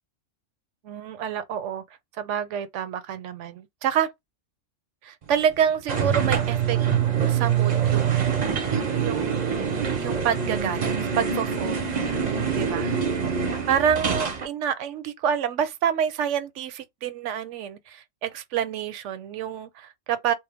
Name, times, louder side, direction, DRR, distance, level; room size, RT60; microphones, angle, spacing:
voice 1, 0.8-1.8 2.2-4.1 5.0-6.8 7.3-8.5 9.0-11.9 12.5-12.9 13.7-20.3, right 8 dB, 70° right, 0.9 m, -28 dB
sound 1, 5.9-14.5, right 7 dB, 40° right, 0.7 m, -25 dB
4.3 x 2.0 x 3.4 m
omnidirectional pair, 1.3 m